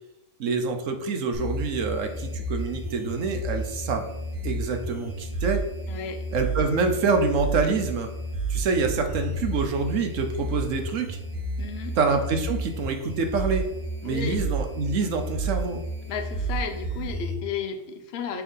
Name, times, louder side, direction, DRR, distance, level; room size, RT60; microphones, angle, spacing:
voice 1, 0.4-4.0 4.4-5.6 6.3-8.1 8.5-11.2 12.0-13.7 14.0-15.8, right 4 dB, 70° right, 6 dB, 1.1 m, -26 dB
sound 1, 1.3-17.3, right 2 dB, 40° right, 2.7 m, -32 dB
voice 2, 5.9-6.3 11.6-12.0 14.0-14.4 16.0-18.4, left 6 dB, 55° left, 5 dB, 0.9 m, -33 dB
5.8 x 3.5 x 5.4 m, 0.84 s
omnidirectional pair, 1.4 m